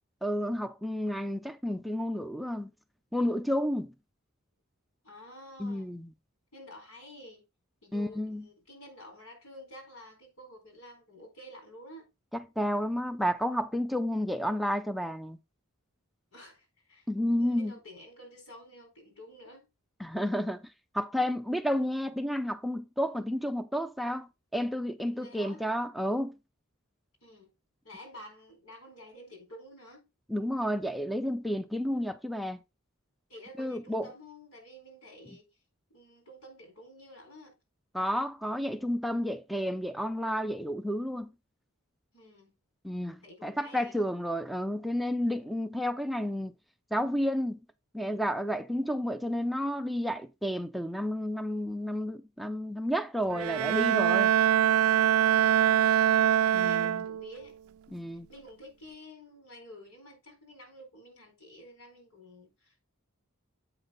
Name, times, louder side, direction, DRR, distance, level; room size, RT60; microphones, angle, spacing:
voice 1, 0.2-2.7 3.1-3.9 5.6-6.1 7.9-8.4 12.3-15.4 17.1-17.7 20.0-20.6 20.9-24.3 24.5-26.3 30.3-32.6 33.6-34.1 37.9-41.3 42.8-46.5 46.9-47.6 47.9-54.3 56.5-57.0 57.9-58.3, equal, ahead, 0.4 m, -31 dB
voice 2, 5.0-5.9 6.5-7.5 7.8-12.1 16.3-19.7 25.1-25.7 27.2-27.5 27.8-30.1 33.3-35.5 35.9-37.5 42.1-42.6 43.2-44.0 55.3-55.9 56.6-57.5 58.3-62.8, left 1 dB, 85° left, 4.3 m, -50 dB
Bowed string instrument, 53.3-57.4, right 10 dB, 80° right, 0.3 m, -24 dB
8.0 x 5.7 x 3.8 m
head